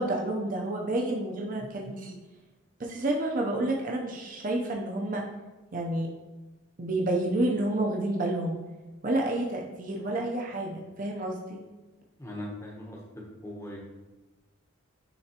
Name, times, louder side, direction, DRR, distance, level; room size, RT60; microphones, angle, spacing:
voice 1, 0.0-2.2 2.8-5.2 5.7-6.1 6.8-8.6 9.0-11.6, right 1 dB, 40° right, -1 dB, 0.6 m, -29 dB
voice 2, 12.2-13.0 13.4-13.8, left 1 dB, 15° left, -1 dB, 0.9 m, -39 dB
9.8 x 3.5 x 2.9 m, 1.2 s
head